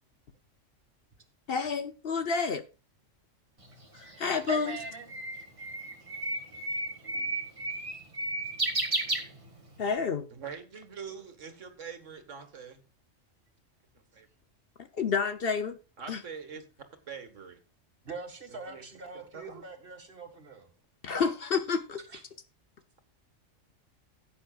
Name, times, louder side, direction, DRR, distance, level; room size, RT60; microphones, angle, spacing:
voice 1, 1.5-2.6 3.9-4.8 9.8-10.3 14.9-15.8 16.1-16.2 21.0-22.0, left 5 dB, 55° left, 10 dB, 0.9 m, -29 dB
Bird, 3.6-9.9, right 2 dB, 25° right, 1.6 m, -33 dB
voice 2, 4.5-5.1 18.0-20.7 22.1-22.2, right 4 dB, 45° right, 5 dB, 2.1 m, -42 dB
voice 3, 10.3-12.8 14.0-14.3 16.0-16.6 17.1-17.6 18.5-18.8 19.1-19.6, right 6 dB, 75° right, 7 dB, 1.9 m, -44 dB
16.0 x 8.5 x 2.4 m, 0.31 s
omnidirectional pair, 1.3 m